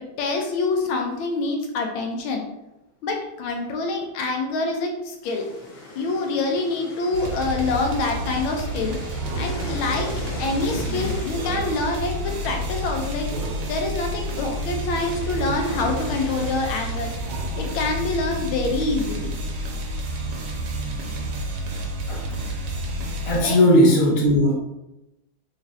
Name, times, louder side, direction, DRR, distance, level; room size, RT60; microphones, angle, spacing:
voice 1, 0.2-2.4 3.0-5.5 5.9-9.0 9.4-10.1 10.4-13.3 13.7-17.1 17.5-19.3 23.4-23.6, left 3 dB, 80° left, 2 dB, 1.4 m, -26 dB
sound 1, 5.2-17.1, left 1 dB, 60° left, 0.9 m, -40 dB
sound 2, 7.1-23.4, right 1 dB, 65° right, 1.1 m, -30 dB
sound 3, 9.2-10.2 11.3-12.4 13.2-14.2 15.3-16.2 17.2-18.2, right 4 dB, 85° right, 1.5 m, -38 dB
voice 2, 23.2-24.5, equal, 45° left, -5 dB, 0.4 m, -18 dB
3.8 x 3.1 x 2.6 m, 0.92 s
omnidirectional pair, 2.3 m